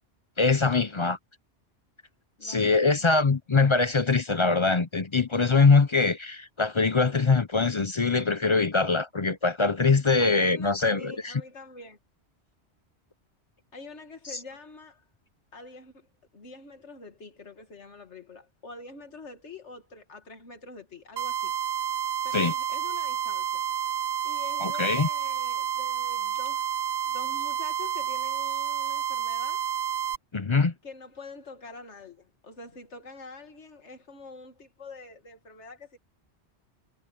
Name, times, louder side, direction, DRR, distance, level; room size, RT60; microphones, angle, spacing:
voice 1, 0.4-1.2 2.4-11.3 22.3-22.5 24.6-25.1 30.3-30.7, left 4 dB, 35° left, 0.6 m, -23 dB
voice 2, 2.4-3.3 10.2-12.0 13.7-15.1 15.5-16.1 16.3-21.5 22.2-23.7 24.2-26.7 27.1-29.7 30.8-36.0, left 3 dB, 85° left, 2.4 m, -46 dB
sound 1, 21.2-30.2, right 9 dB, 60° right, 0.5 m, -30 dB
omnidirectional pair, 1.2 m